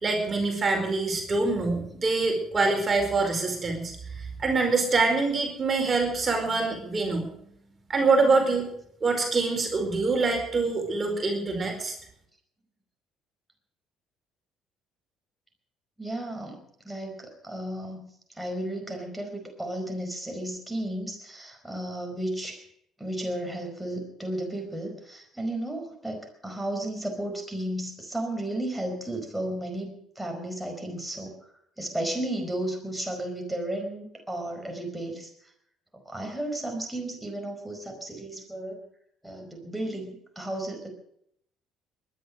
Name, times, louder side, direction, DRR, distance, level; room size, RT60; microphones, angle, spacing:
voice 1, 0.0-3.9 4.2-7.3 7.9-8.7 9.0-11.9, right 3 dB, 35° right, 3 dB, 4.8 m, -25 dB
voice 2, 16.0-18.1 18.3-22.7 23.0-31.4 31.8-35.5 36.0-38.9 39.2-40.9, right 1 dB, 5° right, 2 dB, 4.9 m, -34 dB
20.5 x 10.5 x 6.5 m, 0.71 s
supercardioid pair, 65°, 0 cm